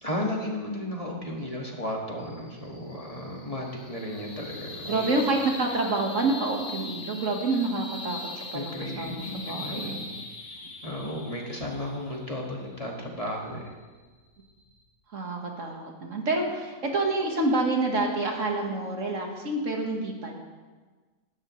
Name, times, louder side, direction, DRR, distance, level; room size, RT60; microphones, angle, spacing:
voice 1, 0.0-5.1 8.5-10.1 10.8-13.7, left 1 dB, 25° left, -1 dB, 1.9 m, -34 dB
sound 1, 2.2-14.8, left 2 dB, 45° left, 1.7 m, -42 dB
voice 2, 4.9-8.2 8.5-10.0 15.1-20.3, right 2 dB, 60° right, 1 dB, 1.9 m, -28 dB
17.0 x 12.5 x 3.2 m, 1.3 s
omnidirectional pair, 1.5 m